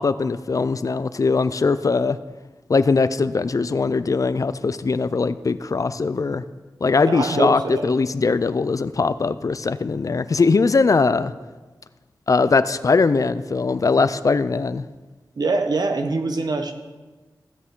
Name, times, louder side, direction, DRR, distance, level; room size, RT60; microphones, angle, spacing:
voice 1, 0.0-2.2 2.7-6.4 6.8-11.3 12.3-14.8, left 4 dB, 50° left, 14 dB, 0.4 m, -20 dB
voice 2, 7.1-7.9 15.4-16.7, right 3 dB, 65° right, 6 dB, 1.1 m, -23 dB
15.5 x 8.2 x 3.7 m, 1.3 s
wide cardioid pair, 70°, 7 cm